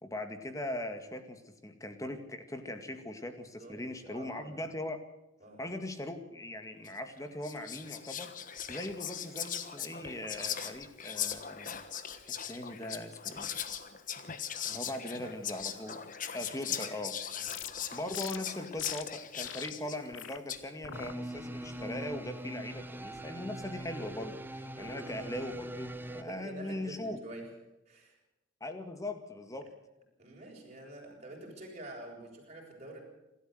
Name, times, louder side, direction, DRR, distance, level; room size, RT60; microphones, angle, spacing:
voice 1, 0.0-5.0 5.6-8.3 8.7-11.8 12.5-13.5 14.6-16.0 16.3-17.2 17.9-27.2 28.6-29.7, left 1 dB, 15° left, 7 dB, 2.1 m, -40 dB
voice 2, 3.6-4.6 5.4-5.6 15.0-15.3 17.3-17.5 24.7-25.1 26.1-27.5 27.9-28.2 30.2-33.0, right 1 dB, 35° right, -1 dB, 7.0 m, -47 dB
Whispering, 6.9-7.1 7.4-20.7, left 9 dB, 40° left, 1.3 m, -39 dB
sound 1, 17.5-17.7 18.1-18.4 18.8-19.0 19.4-19.7 20.1-20.4 20.8-21.1 21.6-22.0, left 10 dB, 75° left, 0.9 m, -43 dB
sound 2, 20.9-26.2, right 1 dB, 10° right, 1.1 m, -42 dB
27.0 x 13.0 x 7.9 m, 0.94 s
head